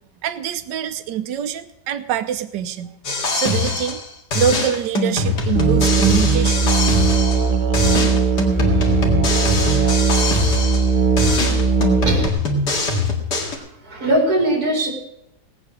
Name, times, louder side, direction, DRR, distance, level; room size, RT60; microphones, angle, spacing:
voice 1, 0.2-2.9 3.3-4.0 4.3-6.7, right 9 dB, 90° right, 11 dB, 1.4 m, -24 dB
sound 1, 3.0-4.1 4.3-7.5 7.7-10.9 11.2-13.6, left 3 dB, 75° left, 2.6 m, -22 dB
Musical instrument, 5.5-12.3, right 5 dB, 30° right, 1.1 m, -18 dB
voice 2, 11.3-11.7 12.1-12.3 13.4-14.9, right 1 dB, 60° right, 2 dB, 3.8 m, -22 dB
18.0 x 8.6 x 6.2 m, 0.81 s
omnidirectional pair, 1.8 m